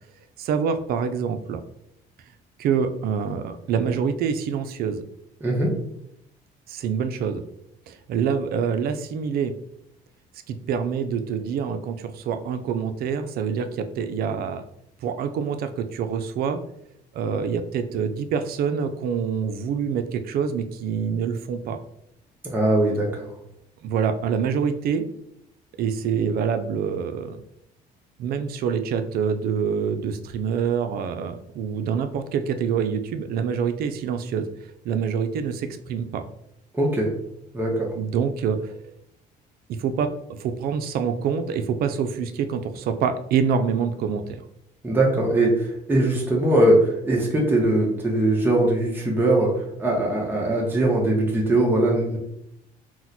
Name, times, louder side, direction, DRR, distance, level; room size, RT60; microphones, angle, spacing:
voice 1, 0.4-1.6 2.6-5.0 6.7-7.4 7.9-9.5 10.5-14.6 15.0-16.6 17.1-21.8 23.8-25.1 25.8-27.4 28.2-34.5 34.8-36.2 37.9-38.8 39.7-44.4, right 6 dB, 65° right, 9 dB, 0.4 m, -26 dB
voice 2, 5.4-5.7 22.4-23.3 36.7-37.1 37.5-37.9 44.8-52.2, right 1 dB, 10° right, -2 dB, 0.7 m, -21 dB
2.9 x 2.1 x 4.0 m, 0.76 s
cardioid pair, 110°, 17 cm